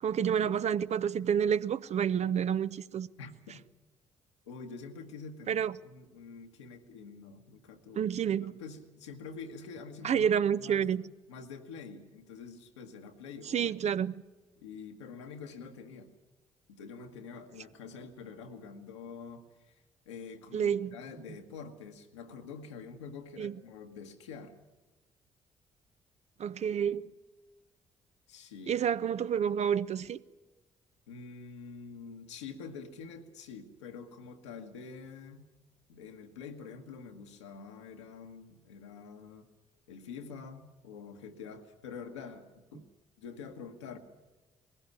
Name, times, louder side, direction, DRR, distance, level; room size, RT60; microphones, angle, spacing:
voice 1, 0.0-3.1 5.5-5.7 8.0-8.5 10.0-11.0 13.5-14.1 20.5-20.9 23.4-23.6 26.4-27.1 28.7-30.2, right 8 dB, 50° right, 0.7 m, -29 dB
voice 2, 3.2-3.6 4.4-8.1 8.4-10.3 10.6-10.9 11.3-13.7 14.6-16.1 16.7-24.5 28.3-28.8 31.1-35.5 35.9-39.5 39.9-42.9 43.2-44.0, left 5 dB, 85° left, 1.4 m, -46 dB
20.0 x 16.0 x 9.5 m
hypercardioid pair, 45°, 14 cm